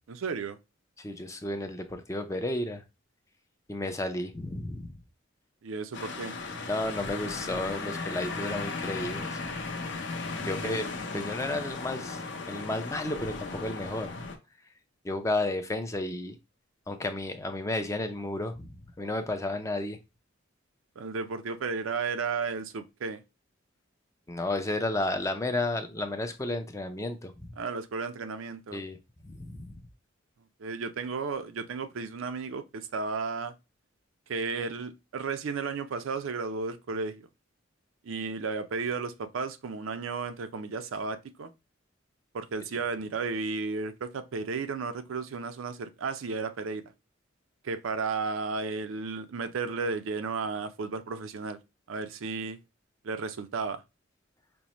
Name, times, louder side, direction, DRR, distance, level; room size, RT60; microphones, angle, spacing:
voice 1, 0.1-0.6 5.6-6.3 10.6-10.9 21.0-23.2 27.6-28.8 30.6-33.5 34.3-37.3 38.0-41.5 42.3-46.8 47.6-51.6 51.9-52.6 53.0-53.8, right 4 dB, 85° right, 0.5 m, -33 dB
voice 2, 1.0-2.8 3.7-4.9 6.7-9.4 10.4-10.8 11.1-12.2 12.5-14.2 15.0-16.4 16.9-20.0 24.3-27.5 28.7-29.0 29.2-29.7, left 2 dB, 15° left, 0.4 m, -32 dB
sound 1, 5.9-14.4, left 3 dB, 60° left, 0.6 m, -36 dB
5.2 x 2.0 x 3.0 m
head